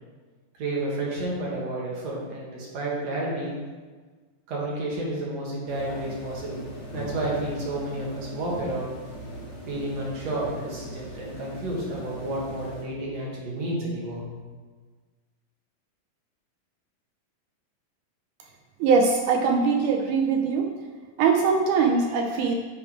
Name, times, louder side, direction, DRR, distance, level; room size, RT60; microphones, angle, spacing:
voice 1, 0.6-3.5 4.5-6.7 6.9-8.9 9.7-14.2, right 1 dB, 55° right, -5 dB, 2.6 m, -31 dB
sound 1, 5.7-12.8, equal, 40° left, 2.6 m, -39 dB
voice 2, 18.8-20.7 21.2-22.5, right 5 dB, 80° right, 2 dB, 1.9 m, -22 dB
8.5 x 4.7 x 4.9 m, 1.4 s
omnidirectional pair, 4.0 m